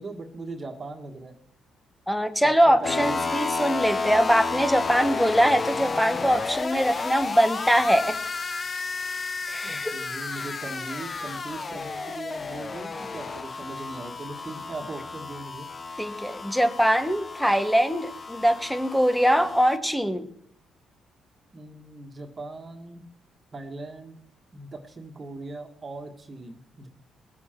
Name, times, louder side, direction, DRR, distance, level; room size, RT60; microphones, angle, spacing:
voice 1, 0.0-1.4 2.7-3.2 9.6-15.7 21.5-23.1 23.5-24.2 24.5-26.9, right 2 dB, 35° right, 3 dB, 1.8 m, -39 dB
voice 2, 2.1-8.2 9.5-10.0 16.0-20.3, equal, ahead, 9 dB, 1.3 m, -22 dB
sound 1, 2.8-19.8, left 4 dB, 35° left, 0.7 m, -32 dB
21.0 x 7.4 x 4.5 m, 0.68 s
cardioid pair, 90°, 0 cm